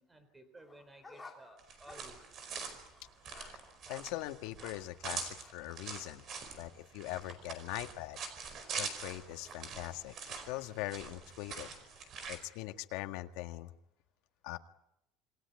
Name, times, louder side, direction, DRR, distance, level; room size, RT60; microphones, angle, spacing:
voice 1, 0.0-2.2, right 1 dB, 10° right, 10 dB, 3.6 m, -56 dB
sound 1, 0.6-5.0 5.4-5.6, left 3 dB, 10° left, 2.8 m, -56 dB
sound 2, 1.6-12.4, right 5 dB, 35° right, 4.9 m, -44 dB
voice 2, 3.3-3.6 3.9-6.2 6.6-8.2 8.7-10.2 10.5-11.7 12.3-13.7 14.4-14.6, left 17 dB, 80° left, 6 dB, 1.8 m, -41 dB
28.0 x 21.0 x 9.6 m, 0.80 s
cardioid pair, 175°, 0 cm